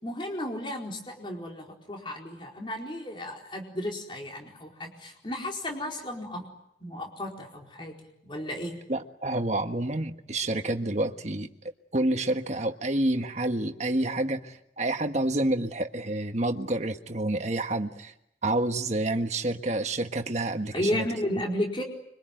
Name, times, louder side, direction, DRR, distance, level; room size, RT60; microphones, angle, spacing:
voice 1, 0.0-6.5 6.8-7.9 8.2-8.8 20.7-21.8, left 1 dB, 30° left, 1 dB, 4.6 m, -33 dB
voice 2, 8.9-11.5 11.9-18.1 18.4-21.0, right 1 dB, 40° right, 7 dB, 1.6 m, -28 dB
26.0 x 24.5 x 9.2 m, 0.80 s
head